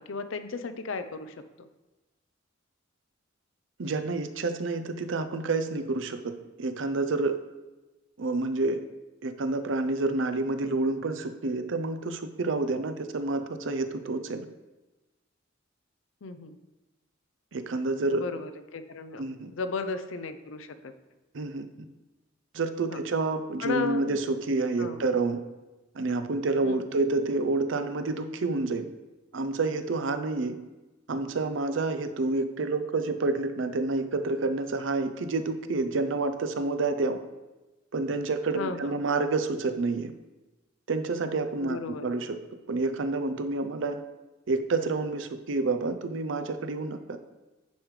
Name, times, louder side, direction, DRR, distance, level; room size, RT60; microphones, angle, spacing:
voice 1, 0.0-1.7 16.2-16.6 18.1-19.2 19.5-20.9 22.9-23.0 23.6-24.2 24.8-25.0 26.6-26.8 38.5-39.0 41.6-42.1, left 4 dB, 80° left, 10 dB, 0.5 m, -35 dB
voice 2, 3.8-6.3 6.6-7.4 8.2-8.8 9.2-14.4 17.5-18.3 19.2-19.5 21.3-21.7 22.5-25.4 25.9-28.9 29.3-30.6 31.1-37.2 37.9-40.1 40.9-41.8 42.0-42.4 42.7-44.0 44.5-47.0, right 3 dB, 65° right, 9 dB, 0.5 m, -28 dB
9.3 x 5.0 x 3.2 m, 1.1 s
head